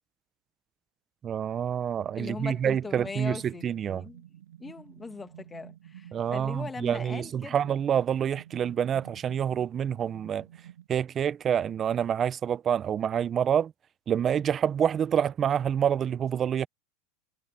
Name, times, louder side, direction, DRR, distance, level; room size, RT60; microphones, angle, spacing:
voice 1, 1.2-4.0 6.1-10.5 10.9-13.7 14.1-16.7, right 8 dB, 30° right, 0.9 m, -27 dB
sound 1, 2.0-10.9, right 11 dB, 80° right, 7.4 m, -50 dB
voice 2, 2.2-4.2 4.6-7.6, left 4 dB, 15° left, 2.2 m, -40 dB
hypercardioid pair, 100°, 0 cm